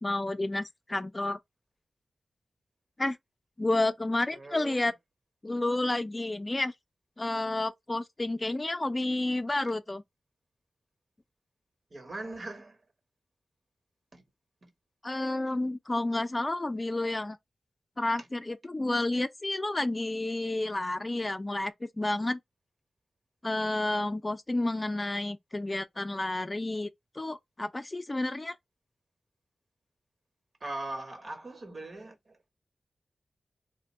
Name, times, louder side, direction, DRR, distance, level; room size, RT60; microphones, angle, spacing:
voice 1, 0.0-1.4 3.0-3.2 3.6-4.9 5.4-6.7 7.2-10.0 15.0-17.4 18.0-22.4 23.4-26.9 27.1-28.6, left 2 dB, 35° left, 0.4 m, -30 dB
voice 2, 4.3-4.9 11.9-12.8 14.1-14.2 14.6-14.7 30.6-32.5, right 2 dB, 60° right, 1.2 m, -40 dB
2.5 x 2.2 x 3.1 m
cardioid pair, 40°, 0 cm